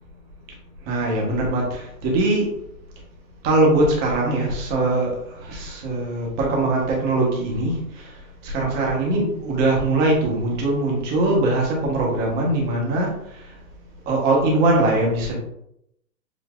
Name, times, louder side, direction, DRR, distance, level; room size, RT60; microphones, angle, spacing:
voice 1, 0.9-2.5 3.4-5.1 5.4-7.7 8.4-13.1 14.1-15.4, right 2 dB, 20° right, -2 dB, 1.1 m, -21 dB
7.1 x 2.5 x 2.4 m, 0.76 s
hypercardioid pair, 145°, 49 cm